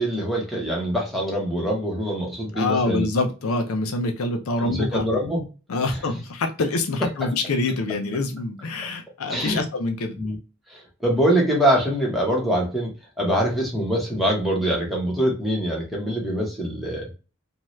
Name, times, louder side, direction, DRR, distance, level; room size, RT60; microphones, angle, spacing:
voice 1, 0.0-3.1 4.6-5.5 5.9-6.0 7.2-7.3 9.3-9.6 10.2-10.4 10.7-17.1, equal, ahead, -2 dB, 0.9 m, -24 dB
voice 2, 2.6-5.0 5.7-10.2, left 2 dB, 65° left, 5 dB, 0.5 m, -25 dB
2.7 x 2.3 x 3.0 m, 0.32 s
head